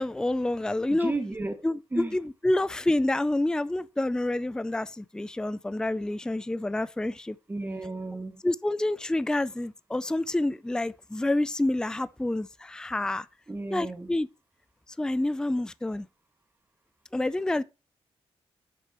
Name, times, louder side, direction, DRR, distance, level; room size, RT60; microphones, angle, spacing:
voice 1, 0.0-1.1 1.6-7.4 8.4-13.3 13.7-14.3 15.0-16.1 17.1-17.6, left 1 dB, 5° left, 0.4 m, -28 dB
voice 2, 0.9-1.5 1.9-2.2 7.5-8.4 13.5-14.1, right 2 dB, 20° right, 2.1 m, -33 dB
11.5 x 6.4 x 3.1 m
cardioid pair, 100°, 10 cm